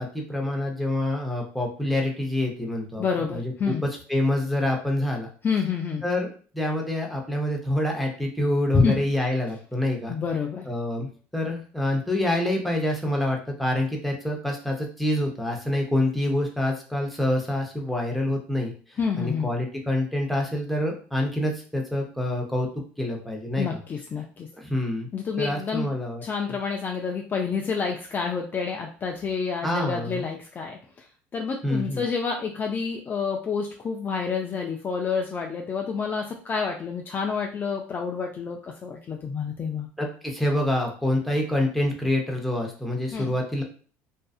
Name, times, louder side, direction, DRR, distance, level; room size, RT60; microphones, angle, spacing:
voice 1, 0.0-3.0 3.3-5.3 6.0-6.3 6.5-10.1 10.7-18.7 19.2-22.7 23.0-23.8 24.6-25.1 25.4-26.2 26.5-26.6 29.6-30.3 31.6-32.0 40.0-43.6, left 1 dB, ahead, 0 dB, 0.8 m, -26 dB
voice 2, 3.0-3.8 5.4-6.0 8.7-9.0 10.1-10.7 19.0-19.5 23.6-24.5 25.1-25.9 26.2-30.8 31.3-39.9 43.1-43.3, left 5 dB, 30° left, 1 dB, 0.4 m, -28 dB
2.6 x 2.3 x 2.4 m, 0.40 s
supercardioid pair, 90°, 6 cm